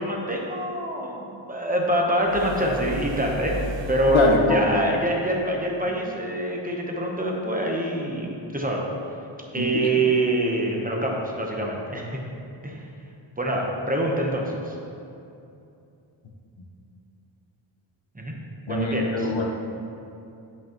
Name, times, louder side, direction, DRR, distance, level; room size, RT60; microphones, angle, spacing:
voice 1, 0.0-3.6 3.9-8.9 9.5-12.2 12.6-12.8 13.4-14.8 18.1-18.3 18.7-19.3, right 1 dB, 20° right, -1 dB, 0.9 m, -25 dB
sound 1, 2.2-4.6, equal, 70° right, 0.7 m, -34 dB
voice 2, 4.1-4.6 9.6-9.9 18.7-19.5, left 3 dB, 75° left, 1 dB, 1.0 m, -23 dB
10.5 x 5.4 x 3.0 m, 2.7 s
wide cardioid pair, 105°, 47 cm